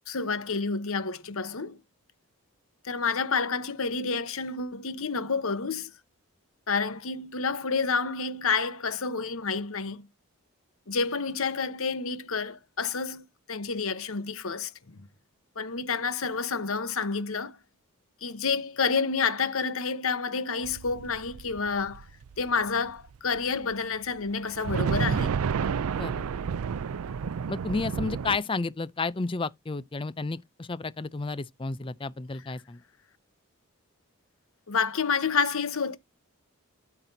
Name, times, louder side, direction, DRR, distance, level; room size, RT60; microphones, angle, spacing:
voice 1, 0.1-1.8 2.8-5.9 6.7-10.1 10.9-15.1 15.6-17.6 18.2-22.1 22.4-25.3 34.7-36.0, left 5 dB, 70° left, 1.0 m, -29 dB
sound 1, 20.6-23.4 23.7-23.8 24.4-28.4, right 6 dB, 80° right, 0.4 m, -30 dB
voice 2, 25.9-26.3 27.5-32.8, left 3 dB, 25° left, 0.4 m, -32 dB
13.0 x 5.9 x 2.7 m
head